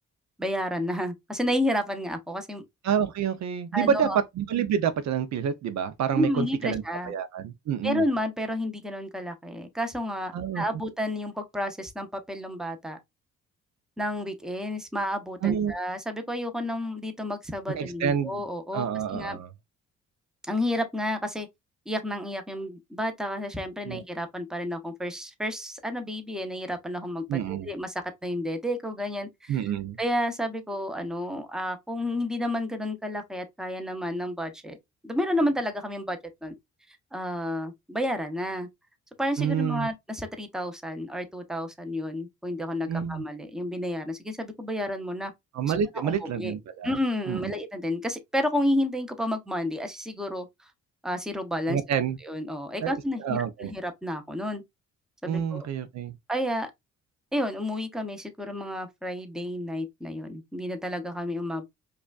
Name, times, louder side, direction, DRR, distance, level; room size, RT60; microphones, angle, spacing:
voice 1, 0.4-2.6 3.7-4.2 6.1-7.1 7.8-13.0 14.0-18.9 19.1-19.4 20.5-21.5 21.9-29.6 30.0-34.8 35.0-36.5 37.1-38.7 39.2-45.3 46.0-46.5 46.8-50.5 51.0-51.8 52.2-54.6 55.2-55.7 56.3-56.7 57.3-61.7, left 1 dB, ahead, 0.7 m, -31 dB
voice 2, 2.8-8.0 10.3-10.6 15.4-15.7 17.7-18.4 18.7-19.5 23.8-24.0 27.3-27.7 29.5-30.0 39.4-39.9 42.9-43.2 45.5-46.9 47.3-47.5 51.7-52.2 52.8-52.9 53.2-53.7 55.2-56.2, right 8 dB, 65° right, 0.6 m, -28 dB
4.8 x 2.4 x 2.3 m
cardioid pair, 90°, 30 cm